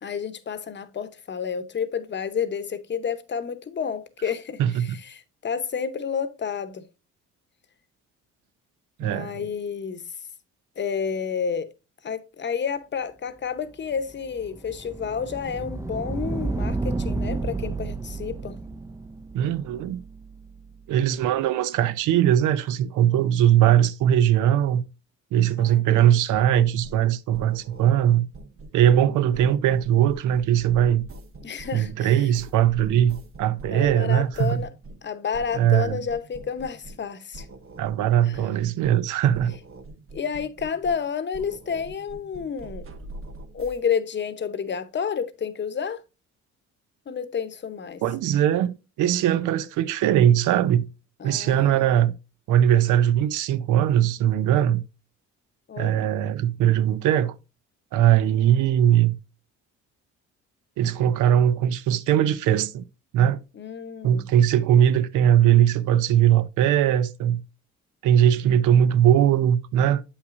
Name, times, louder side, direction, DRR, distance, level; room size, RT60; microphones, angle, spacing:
voice 1, 0.0-6.8 9.0-10.0 10.8-11.7 12.0-18.6 25.6-26.4 29.1-29.2 31.4-32.2 33.7-34.7 35.0-37.5 38.2-38.4 40.1-42.8 43.5-46.0 47.1-48.0 51.2-52.0 55.7-56.0 63.5-64.3, left 6 dB, 35° left, 0.8 m, -30 dB
voice 2, 4.6-5.0 9.0-9.4 19.3-20.0 20.9-24.8 25.3-28.3 28.7-31.0 31.7-34.6 35.5-36.0 37.8-39.5 48.0-50.9 51.2-52.1 52.5-54.8 55.8-57.3 57.9-59.1 60.8-62.8 63.1-63.4 64.0-67.4 68.0-70.0, right 10 dB, 85° right, 0.6 m, -20 dB
sound 1, 14.0-20.8, right 3 dB, 10° right, 0.3 m, -32 dB
sound 2, 26.3-27.1 27.3-29.1 29.3-35.1 35.3-37.1 37.3-39.1 39.3-41.1 41.3-43.8, right 2 dB, 45° right, 1.0 m, -44 dB
8.0 x 5.7 x 2.5 m
cardioid pair, 90°, 30 cm